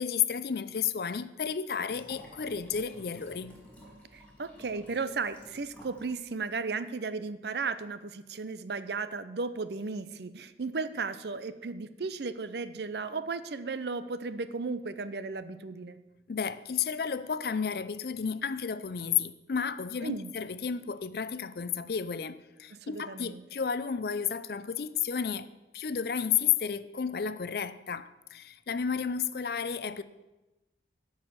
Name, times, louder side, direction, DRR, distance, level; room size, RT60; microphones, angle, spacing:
voice 1, 0.0-3.5 16.3-30.0, left 7 dB, 55° left, 0.4 m, -32 dB
Liquid, 1.9-6.1 6.4-6.5, equal, 5° left, 2.2 m, -52 dB
voice 2, 4.1-16.0 20.0-20.3 22.7-23.4, right 4 dB, 70° right, 0.6 m, -35 dB
11.5 x 4.9 x 7.5 m
head